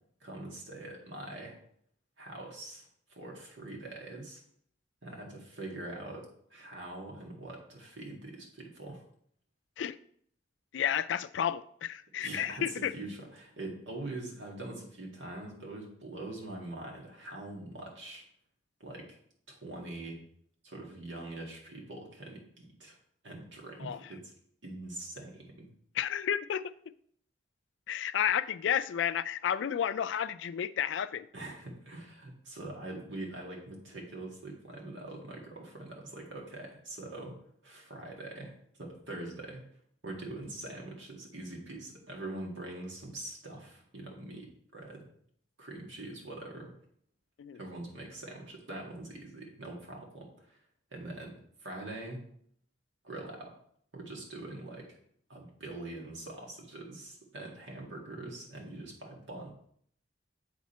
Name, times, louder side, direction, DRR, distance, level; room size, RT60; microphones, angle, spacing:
voice 1, 0.2-1.6 2.2-2.9 3.1-4.4 5.0-9.0 12.2-18.2 18.8-19.2 19.5-20.2 20.6-23.0 23.2-24.3 24.6-25.7 31.3-39.6 40.0-45.1 45.6-46.7 47.5-50.6 50.9-52.3 53.0-53.6 53.9-55.0 55.3-59.5, right 2 dB, 90° right, 1.9 m, -43 dB
voice 2, 10.7-12.9 23.8-24.0 26.0-26.6 27.9-31.3 47.4-47.6, left 9 dB, 85° left, 0.3 m, -31 dB
8.4 x 3.7 x 4.2 m
head